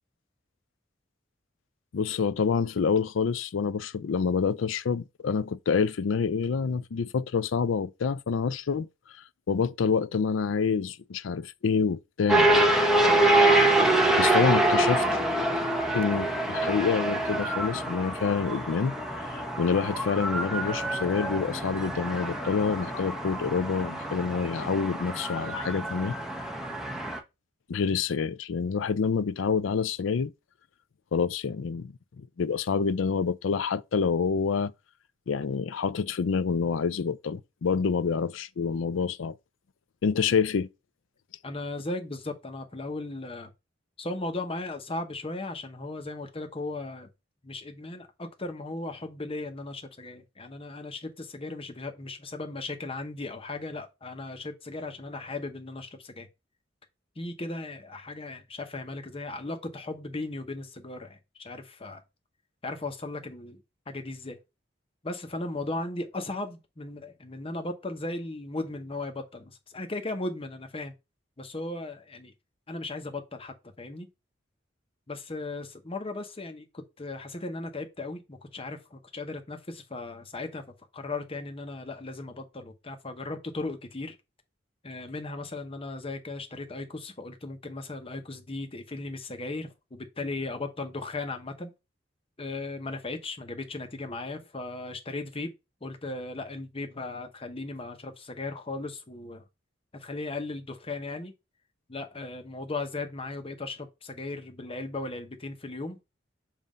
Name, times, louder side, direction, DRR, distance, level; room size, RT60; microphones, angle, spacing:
voice 1, 1.9-8.9 9.5-12.7 14.2-15.2 15.9-18.9 19.2-26.2 27.7-30.3 31.1-34.7 35.3-39.3 40.0-40.7, left 5 dB, 75° left, 0.4 m, -27 dB
sound 1, 12.3-27.2, right 1 dB, ahead, 0.9 m, -26 dB
voice 2, 41.4-43.5 44.0-47.1 47.4-56.3 57.2-62.0 62.6-63.6 63.9-64.4 65.0-70.9 71.4-72.3 72.7-74.1 75.1-80.6 80.9-84.1 84.8-91.7 92.4-95.5 95.8-99.4 99.9-101.3 101.9-106.0, left 2 dB, 30° left, 1.0 m, -37 dB
7.4 x 2.7 x 5.1 m
head